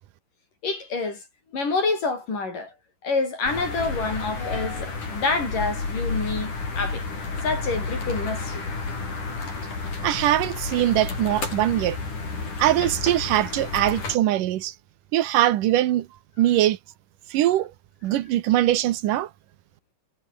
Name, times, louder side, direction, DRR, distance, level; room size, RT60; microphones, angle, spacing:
voice 1, 0.6-1.2 1.5-2.7 3.0-7.0 7.4-9.0, left 3 dB, 90° left, 9.5 m, -27 dB
sound 1, 3.5-14.2, left 3 dB, 75° left, 8.9 m, -31 dB
voice 2, 10.0-12.0 12.6-14.7 15.1-16.1 16.4-16.8 17.3-17.7 18.0-19.3, right 13 dB, 85° right, 2.8 m, -22 dB
omnidirectional pair, 3.6 m